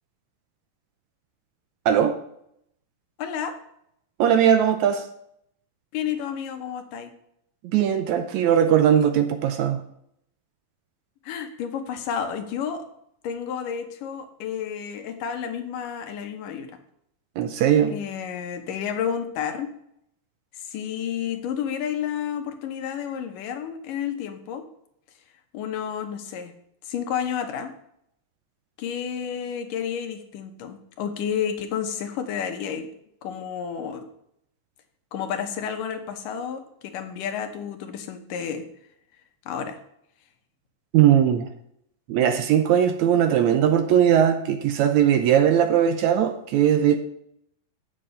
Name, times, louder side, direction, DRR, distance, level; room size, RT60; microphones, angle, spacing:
voice 1, 1.9-2.2 4.2-5.0 7.6-9.8 17.4-17.9 40.9-41.5 42.1-47.0, right 9 dB, 75° right, 7 dB, 1.8 m, -19 dB
voice 2, 3.2-3.6 5.9-7.1 11.2-12.8 13.2-16.7 17.9-19.7 20.5-24.6 25.5-26.5 26.8-27.7 28.8-32.9 33.2-34.1 35.1-38.6 39.5-39.8, left 8 dB, 85° left, 6 dB, 2.7 m, -31 dB
8.6 x 7.5 x 5.5 m, 0.73 s
omnidirectional pair, 3.7 m